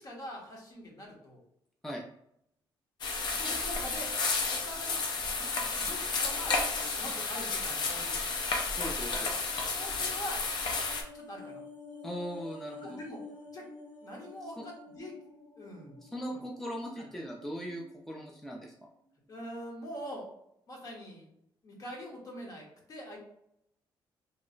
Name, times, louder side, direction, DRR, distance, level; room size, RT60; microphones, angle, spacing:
voice 1, 0.0-1.4 3.3-4.2 4.5-6.6 7.0-8.2 9.6-10.4 11.1-11.6 12.8-13.2 13.5-13.7 14.0-15.2 15.6-16.0 16.3-16.4 17.0-17.1 19.3-20.3 20.7-21.3 21.6-23.2, equal, 45° left, -1 dB, 1.0 m, -44 dB
sound 1, 3.0-11.0, left 4 dB, 60° left, 0.6 m, -32 dB
voice 2, 8.8-9.3 12.0-13.0 14.6-14.7 16.0-18.7, equal, 5° left, -1 dB, 0.4 m, -39 dB
sound 2, 10.3-18.8 19.1-19.2, left 3 dB, 90° left, 0.9 m, -50 dB
3.0 x 2.0 x 3.8 m, 0.74 s
cardioid pair, 130°, 9 cm